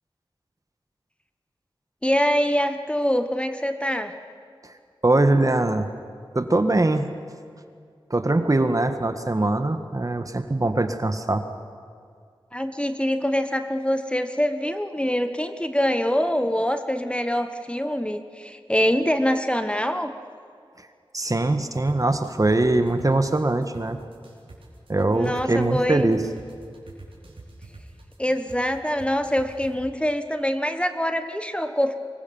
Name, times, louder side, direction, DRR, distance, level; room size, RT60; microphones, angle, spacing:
voice 1, 2.0-4.1 12.5-20.1 25.1-26.1 28.2-32.0, equal, 10° left, 8 dB, 1.2 m, -24 dB
voice 2, 5.0-5.9 6.3-7.0 8.1-11.4 21.1-24.0 24.9-26.2, right 2 dB, 40° right, 8 dB, 1.6 m, -22 dB
sound 1, 21.7-29.7, right 3 dB, 85° right, 4.8 m, -45 dB
25.0 x 21.5 x 7.2 m, 2.3 s
wide cardioid pair, 65°, 9 cm